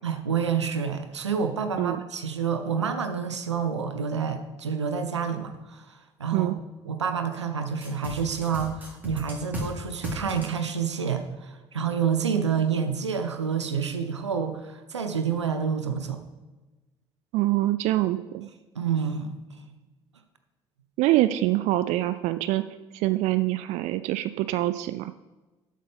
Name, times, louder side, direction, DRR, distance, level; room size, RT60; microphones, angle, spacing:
voice 1, 0.0-6.5 6.8-16.2 18.7-19.7, right 6 dB, 85° right, 8 dB, 0.7 m, -28 dB
sound 1, 7.8-9.7 10.0-10.5, equal, 10° right, 3.1 m, -35 dB
voice 2, 17.3-18.5 21.0-22.6 22.9-25.2, right 16 dB, 50° right, 12 dB, 0.4 m, -25 dB
12.5 x 7.9 x 3.5 m, 1.2 s
figure-of-eight pair, 55°, 15 cm